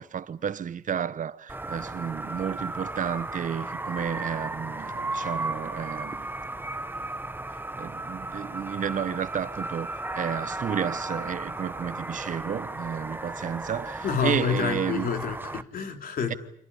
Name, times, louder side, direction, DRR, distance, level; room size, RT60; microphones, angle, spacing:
voice 1, 0.0-6.3 7.8-15.1, right 8 dB, 60° right, 1.1 m, -32 dB
sound 1, 1.5-15.6, right 2 dB, 15° right, 1.1 m, -35 dB
voice 2, 14.0-16.4, left 7 dB, 70° left, 3.4 m, -28 dB
29.5 x 26.0 x 5.5 m
supercardioid pair, 65°, 15 cm